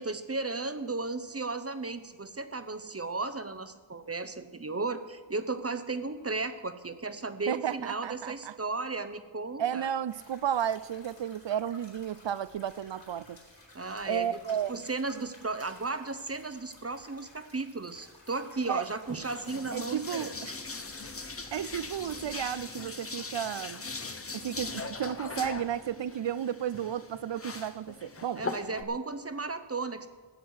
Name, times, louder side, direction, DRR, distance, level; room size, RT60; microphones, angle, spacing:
voice 1, 0.0-9.9 13.7-14.4 14.7-20.4 28.3-30.1, right 3 dB, 30° right, 0.8 m, -35 dB
voice 2, 7.5-8.5 9.6-13.4 14.1-14.8 18.7-18.8 19.7-20.6 21.5-23.8 24.3-28.4, right 9 dB, 65° right, 0.6 m, -33 dB
sound 1, 10.1-22.7, left 1 dB, 70° left, 4.2 m, -55 dB
sound 2, 19.1-28.8, left 3 dB, 30° left, 0.9 m, -40 dB
15.0 x 7.9 x 6.4 m
wide cardioid pair, 60°, 47 cm